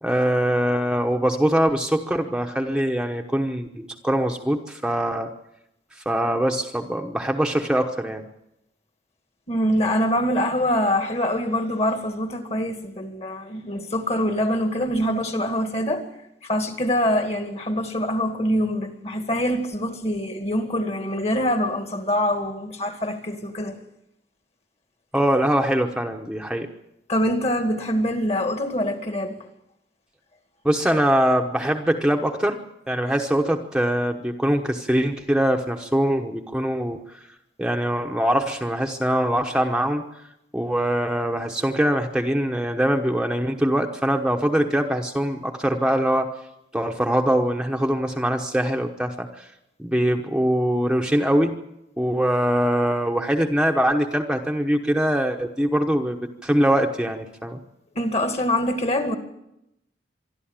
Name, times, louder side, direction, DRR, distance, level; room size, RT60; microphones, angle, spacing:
voice 1, 0.0-5.3 6.0-8.3 25.1-26.7 30.6-32.6 32.9-37.2 37.6-40.1 40.5-46.3 46.7-49.4 49.8-51.6 52.0-56.2 56.4-57.6, equal, 5° right, 1.0 m, -23 dB
voice 2, 9.5-16.1 16.4-23.8 27.1-29.4 58.0-59.2, equal, 35° left, 2.2 m, -24 dB
25.0 x 12.0 x 9.0 m
head